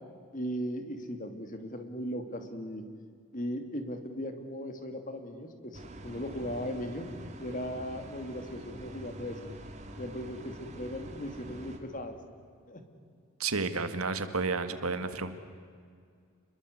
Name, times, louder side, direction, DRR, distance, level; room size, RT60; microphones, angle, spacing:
voice 1, 0.3-2.8 3.3-7.1 7.4-9.4 10.0-12.2 12.7-12.8, equal, 35° left, 7 dB, 2.6 m, -37 dB
sound 1, 5.7-11.8, right 1 dB, 30° right, 2.5 m, -46 dB
voice 2, 13.4-15.3, right 4 dB, 80° right, 9 dB, 1.9 m, -31 dB
29.5 x 22.0 x 8.1 m, 2.2 s
head